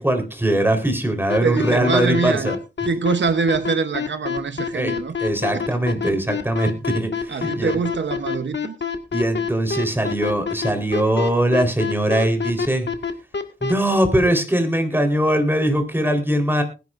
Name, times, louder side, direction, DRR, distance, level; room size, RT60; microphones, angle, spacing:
voice 1, 0.0-2.6 4.7-4.9 5.2-7.8 9.1-12.9 13.6-16.6, right 1 dB, 10° right, 3.9 m, -21 dB
sound 1, 1.3-13.7, left 6 dB, 65° left, 1.8 m, -26 dB
voice 2, 1.4-2.6 2.8-5.1 5.5-5.6 7.3-8.7, right 5 dB, 65° right, 0.9 m, -24 dB
20.0 x 10.5 x 2.5 m
cardioid pair, 65°, 20 cm